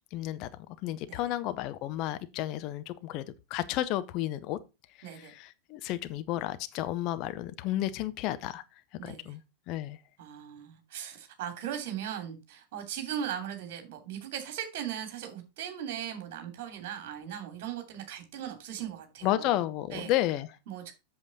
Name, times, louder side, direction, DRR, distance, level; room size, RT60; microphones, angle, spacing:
voice 1, 0.1-0.5 0.8-4.6 5.0-8.6 9.0-9.4 9.7-10.0 19.2-20.5, left 14 dB, 40° left, 0.7 m, -32 dB
voice 2, 5.0-5.3 9.0-9.4 10.2-19.6 19.9-20.1 20.7-20.9, right 9 dB, 50° right, 2.9 m, -38 dB
8.1 x 6.9 x 4.1 m
figure-of-eight pair, 90°, 0 cm